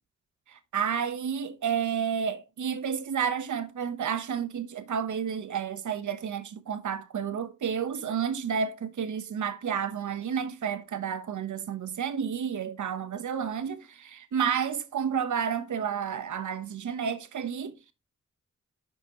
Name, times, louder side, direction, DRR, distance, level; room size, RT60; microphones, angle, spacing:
voice 1, 0.5-17.8, right 7 dB, 75° right, 1.1 m, -31 dB
10.5 x 5.8 x 3.0 m
cardioid pair, 75°, 30 cm